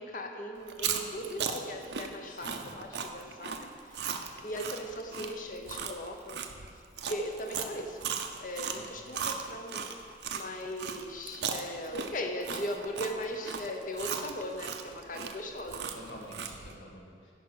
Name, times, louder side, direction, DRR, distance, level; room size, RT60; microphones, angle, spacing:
voice 1, 0.0-6.4 7.0-8.1 8.4-10.0 10.3-16.0, equal, 45° left, 4 dB, 0.8 m, -38 dB
Chewing mastication, 0.6-10.4 10.8-16.7, right 7 dB, 75° right, 0.6 m, -37 dB
voice 2, 2.3-2.7 8.7-8.8 15.9-17.3, equal, 85° left, -3 dB, 1.8 m, -48 dB
11.0 x 4.9 x 6.3 m, 2.2 s
head